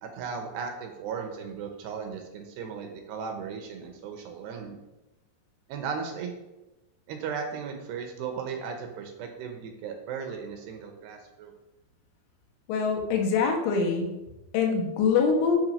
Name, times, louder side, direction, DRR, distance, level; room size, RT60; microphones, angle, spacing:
voice 1, 0.0-4.8 5.7-6.3 7.1-11.5, right 6 dB, 75° right, 4 dB, 2.8 m, -36 dB
voice 2, 12.7-14.1 14.5-15.6, left 5 dB, 90° left, 2 dB, 4.0 m, -24 dB
9.7 x 6.0 x 5.3 m, 1.0 s
omnidirectional pair, 5.5 m